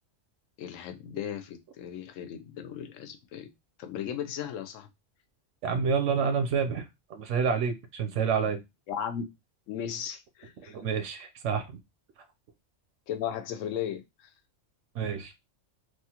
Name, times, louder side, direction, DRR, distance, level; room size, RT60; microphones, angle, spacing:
voice 1, 0.6-3.5 3.8-4.9 8.9-9.3 9.7-10.7 13.1-14.0, left 9 dB, 90° left, 8 dB, 0.9 m, -36 dB
voice 2, 5.6-6.8 7.1-8.6 10.7-11.7 15.0-15.3, right 6 dB, 80° right, 7 dB, 0.9 m, -28 dB
3.0 x 2.4 x 2.8 m, 0.21 s
omnidirectional pair, 1.3 m